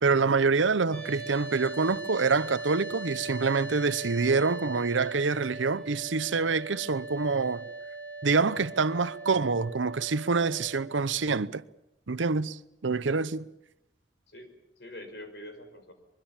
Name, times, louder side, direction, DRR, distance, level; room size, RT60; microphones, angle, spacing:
voice 1, 0.0-7.6 8.2-11.6 12.1-12.6 12.8-13.4, right 4 dB, 85° right, 0.8 m, -26 dB
sound 1, 0.9-11.0, right 3 dB, 5° left, 4.0 m, -40 dB
voice 2, 14.3-15.9, left 1 dB, 60° left, 5.2 m, -45 dB
23.5 x 23.5 x 7.3 m
head